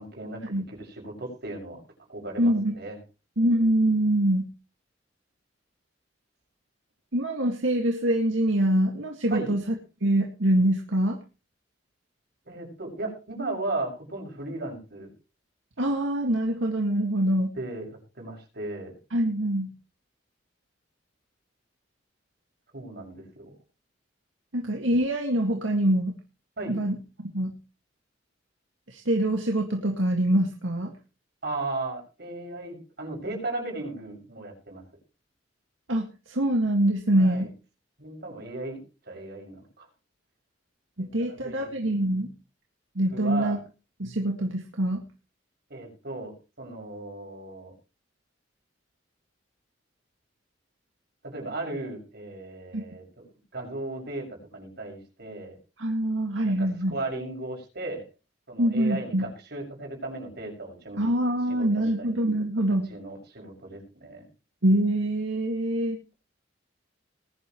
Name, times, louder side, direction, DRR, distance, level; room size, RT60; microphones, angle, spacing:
voice 1, 0.0-1.8 2.1-3.0 9.3-9.5 12.5-15.1 17.6-17.9 18.2-18.9 22.7-23.5 26.6-26.8 31.4-34.8 37.2-37.5 38.0-38.8 39.1-39.9 41.0-41.7 43.1-43.6 45.7-47.7 51.2-53.2 53.5-55.6 56.5-58.1 58.5-61.1 61.5-62.2 62.9-64.3, right 2 dB, 60° right, 1 dB, 6.9 m, -36 dB
voice 2, 2.4-2.7 3.4-4.5 7.1-9.6 10.0-11.2 15.8-17.5 19.1-19.7 24.5-26.1 26.7-27.0 27.2-27.6 28.9-30.9 35.9-37.5 41.0-42.3 43.0-43.6 44.0-45.0 52.7-52.8 55.8-56.9 58.6-59.3 61.0-62.9 64.6-66.0, right 1 dB, 85° right, 1 dB, 2.1 m, -24 dB
20.5 x 11.0 x 3.1 m, 0.32 s
head